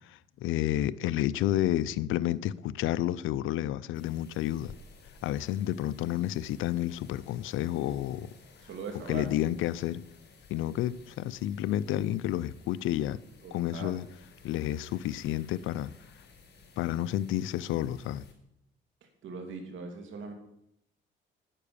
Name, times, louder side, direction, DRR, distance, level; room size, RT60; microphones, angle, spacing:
voice 1, 0.1-4.7 5.2-8.3 9.1-10.0 10.5-13.2 13.5-14.0 14.4-15.9 16.8-18.3, left 13 dB, 85° left, 0.5 m, -30 dB
sound 1, 3.9-18.3, left 4 dB, 55° left, 4.7 m, -56 dB
voice 2, 8.6-9.4 13.4-14.1 19.2-20.3, right 4 dB, 75° right, 2.7 m, -40 dB
10.0 x 9.8 x 6.8 m
cardioid pair, 90°, 20 cm